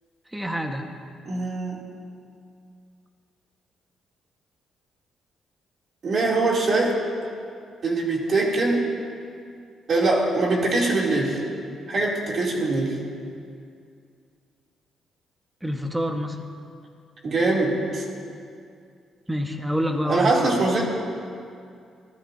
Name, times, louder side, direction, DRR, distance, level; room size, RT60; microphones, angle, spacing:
voice 1, 0.3-0.9 15.6-16.4 19.3-20.6, equal, 10° right, 3 dB, 1.5 m, -27 dB
voice 2, 1.2-1.8 6.0-7.0 7.8-9.0 9.9-11.4 11.9-13.0 17.2-18.0 20.0-20.8, right 2 dB, 50° right, -3 dB, 3.2 m, -22 dB
23.5 x 15.0 x 2.9 m, 2.4 s
cardioid pair, 90°, 0 cm